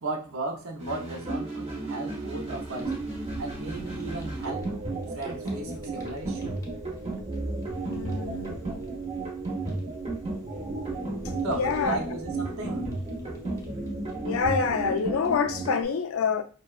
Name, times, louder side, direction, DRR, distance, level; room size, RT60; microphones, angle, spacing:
voice 1, 0.0-2.9 3.4-4.7 5.1-6.6 11.4-12.9, right 2 dB, 75° right, 0.6 m, -35 dB
sound 1, 0.8-15.8, right 2 dB, 30° right, 0.6 m, -33 dB
Fire, 2.2-15.7, equal, 15° left, 0.5 m, -45 dB
voice 2, 7.8-8.6 11.4-12.0 14.2-16.4, left 5 dB, 75° left, 0.4 m, -27 dB
2.7 x 2.1 x 2.3 m
head